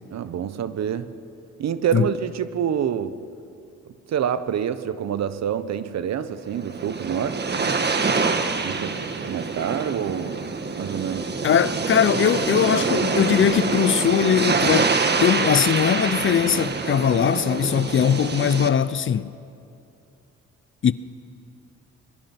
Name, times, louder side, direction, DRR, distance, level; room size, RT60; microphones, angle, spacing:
voice 1, 0.1-1.1 1.6-3.2 4.1-7.5 8.6-10.4 10.7-11.4, right 9 dB, 60° right, 1.1 m, -27 dB
sound 1, 6.4-18.7, right 4 dB, 35° right, 1.6 m, -25 dB
voice 2, 11.4-14.9 15.2-19.3 20.8-20.9, left 8 dB, 40° left, 0.6 m, -20 dB
25.0 x 21.5 x 6.0 m
cardioid pair, 90°, 30 cm